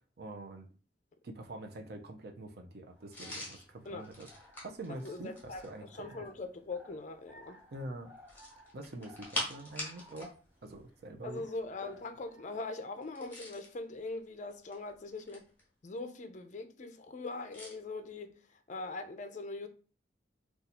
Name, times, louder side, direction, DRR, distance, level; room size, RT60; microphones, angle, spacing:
voice 1, 0.2-0.7 1.2-4.3 4.6-6.3 7.7-8.1 8.7-10.3 10.6-11.4, right 2 dB, 55° right, 0.5 m, -45 dB
sound 1, 2.9-12.7, left 1 dB, 10° right, 0.7 m, -60 dB
sound 2, 3.1-5.8 8.2-10.3 10.6-10.8 13.0-13.7 14.5-15.6 17.5-17.8, left 1 dB, 10° left, 1.1 m, -43 dB
voice 2, 5.0-7.6 11.2-15.5 15.8-18.3 18.7-19.7, left 3 dB, 40° left, 0.4 m, -41 dB
2.6 x 2.3 x 4.1 m
head